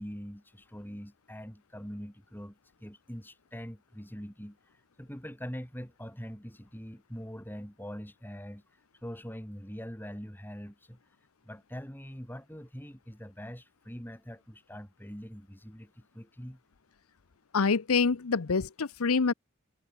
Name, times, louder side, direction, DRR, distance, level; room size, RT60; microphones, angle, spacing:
voice 1, 0.0-4.6 5.0-8.6 9.0-11.0 11.4-16.6, equal, 10° left, 5.4 m, -43 dB
voice 2, 17.5-19.3, left 5 dB, 85° left, 0.8 m, -26 dB
head